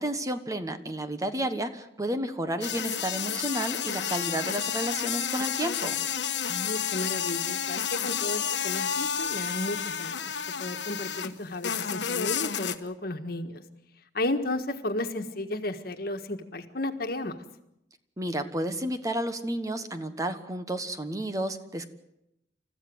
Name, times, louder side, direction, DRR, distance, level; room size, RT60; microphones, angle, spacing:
voice 1, 0.0-6.0 18.2-21.9, right 1 dB, 20° right, 9 dB, 1.3 m, -31 dB
sound 1, 2.6-11.3 11.6-12.8, left 8 dB, 85° left, 1.3 m, -31 dB
voice 2, 6.5-10.3 10.6-13.6 14.1-17.3, left 1 dB, 55° left, 7 dB, 1.7 m, -33 dB
29.5 x 14.5 x 7.9 m, 0.84 s
head